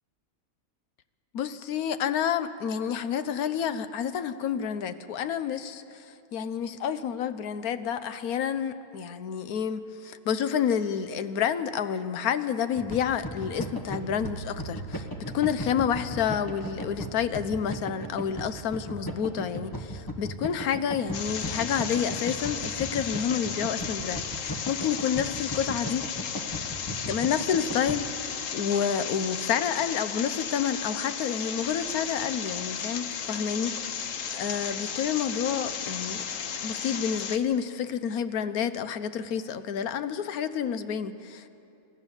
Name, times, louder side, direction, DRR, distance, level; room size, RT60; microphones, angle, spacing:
voice 1, 1.3-6.0 6.3-26.1 27.1-33.8 34.3-36.2 36.6-41.5, left 8 dB, 90° left, 12 dB, 1.3 m, -29 dB
sound 1, 12.8-28.0, equal, 15° left, 1.3 m, -36 dB
sound 2, 14.2-23.5 24.0-24.1, right 5 dB, 90° right, 1.2 m, -48 dB
sound 3, 21.1-37.4, left 7 dB, 65° left, 1.3 m, -34 dB
27.5 x 14.5 x 7.1 m, 2.7 s
omnidirectional pair, 1.5 m